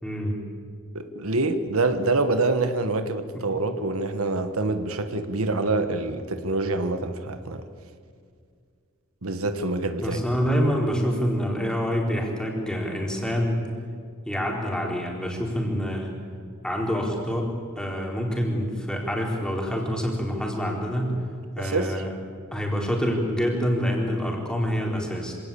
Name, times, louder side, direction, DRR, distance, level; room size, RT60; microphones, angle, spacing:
voice 1, 0.0-0.4 10.0-13.6 14.3-16.1 16.6-17.5 17.8-21.1 21.6-22.1 22.5-25.3, equal, 5° left, -1 dB, 4.3 m, -26 dB
voice 2, 0.9-7.6 9.2-10.2 21.6-22.0, right 2 dB, 80° right, 9 dB, 1.4 m, -26 dB
26.0 x 18.0 x 8.6 m, 2.1 s
head